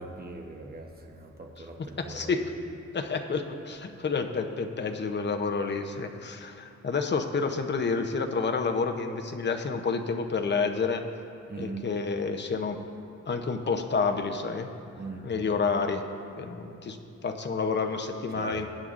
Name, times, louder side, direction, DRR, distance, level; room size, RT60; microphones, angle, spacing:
voice 1, 0.0-2.3 11.5-12.0 14.9-15.3 18.3-18.7, right 3 dB, 30° right, 2 dB, 1.0 m, -40 dB
voice 2, 1.8-2.4 2.9-11.0 11.6-12.8 13.3-14.7 15.2-16.0 16.4-17.0 17.2-18.7, left 4 dB, 35° left, 5 dB, 0.7 m, -29 dB
21.5 x 9.5 x 2.5 m, 2.7 s
wide cardioid pair, 160°, 31 cm